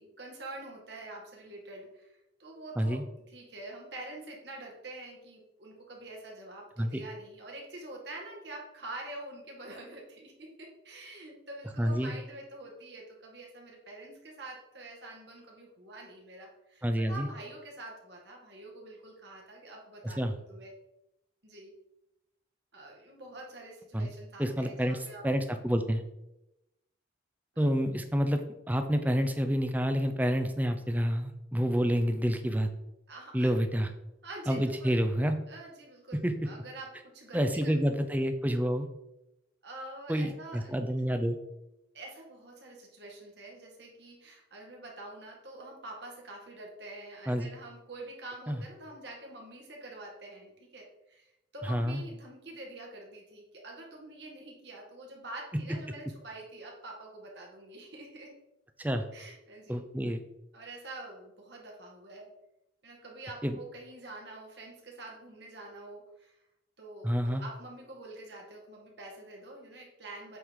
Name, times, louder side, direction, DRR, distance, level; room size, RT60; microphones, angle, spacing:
voice 1, 0.0-20.7 21.4-21.7 22.7-25.3 27.5-27.7 33.1-33.5 34.2-35.0 35.5-37.8 39.6-40.7 41.9-58.3 59.1-59.8 60.5-62.3 62.8-66.4 66.8-70.4, right 2 dB, 60° right, -1 dB, 1.9 m, -46 dB
voice 2, 11.8-12.1 16.8-17.3 20.0-20.3 23.9-24.1 24.4-25.0 25.2-26.0 27.6-32.7 33.3-33.9 34.5-35.4 36.2-36.3 37.3-38.9 40.1-41.4 47.3-47.5 48.5-48.6 51.7-52.0 58.8-59.0 59.7-60.2 63.4-63.6 67.0-67.4, equal, 10° right, 7 dB, 0.5 m, -28 dB
8.1 x 3.9 x 4.7 m, 0.89 s
head